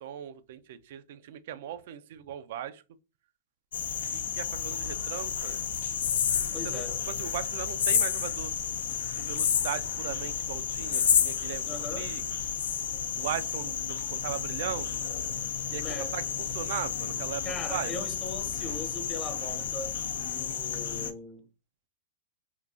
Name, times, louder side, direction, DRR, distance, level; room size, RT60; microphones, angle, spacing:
voice 1, 0.0-2.8 4.1-5.6 6.5-8.5 9.1-12.2 13.2-15.0 15.7-18.1 18.6-18.8, right 10 dB, 65° right, 0.3 m, -38 dB
sound 1, 3.7-21.1, left 8 dB, 80° left, 0.4 m, -31 dB
voice 2, 6.5-7.0 11.7-12.1 15.8-16.1 17.4-20.0 20.2-21.5, left 3 dB, 20° left, 0.6 m, -39 dB
3.8 x 2.3 x 2.3 m
hypercardioid pair, 140°, 0 cm